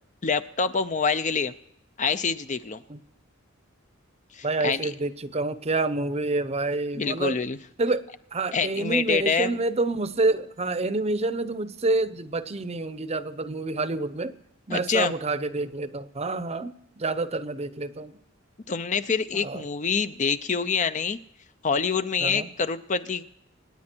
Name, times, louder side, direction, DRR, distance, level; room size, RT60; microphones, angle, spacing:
voice 1, 0.2-1.5 2.0-2.8 4.3-4.9 7.0-7.6 8.5-9.6 14.7-15.1 18.7-21.2 21.6-23.2, left 5 dB, 35° left, 12 dB, 0.6 m, -26 dB
voice 2, 4.4-7.3 7.8-14.4 14.7-18.1 19.3-19.6 22.2-22.5, right 2 dB, 30° right, 13 dB, 0.7 m, -28 dB
26.5 x 9.7 x 4.5 m, 0.76 s
head